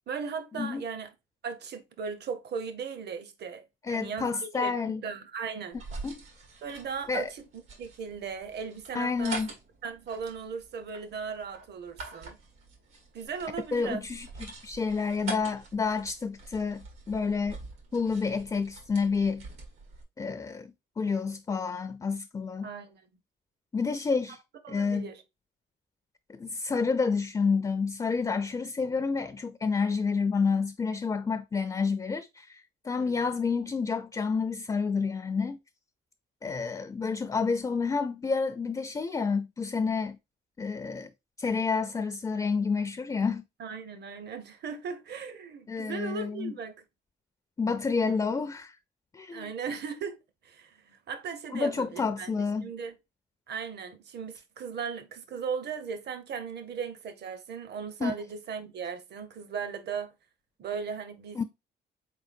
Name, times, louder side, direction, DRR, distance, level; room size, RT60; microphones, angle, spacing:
voice 1, 0.1-1.1 1.4-3.6 3.9-5.8 6.6-7.5 7.8-9.4 9.8-12.4 13.1-14.0 22.6-23.1 24.6-25.2 32.9-33.5 43.6-46.7 49.3-50.2 50.4-53.0 53.5-60.1 60.6-61.4, right 6 dB, 55° right, 0.8 m, -37 dB
voice 2, 3.8-5.0 6.0-6.2 7.1-7.3 8.9-9.5 13.7-14.3 14.6-17.6 17.9-19.5 20.2-22.7 23.7-24.4 24.7-25.1 26.3-35.6 36.4-40.2 40.6-41.1 41.4-43.4 45.7-46.5 47.6-48.8 49.1-49.5 51.5-52.7 58.0-58.1 61.4-61.5, left 5 dB, 20° left, 0.4 m, -29 dB
sound 1, 5.7-20.0, right 3 dB, 90° right, 1.8 m, -45 dB
4.0 x 3.8 x 2.5 m
cardioid pair, 90°, 20 cm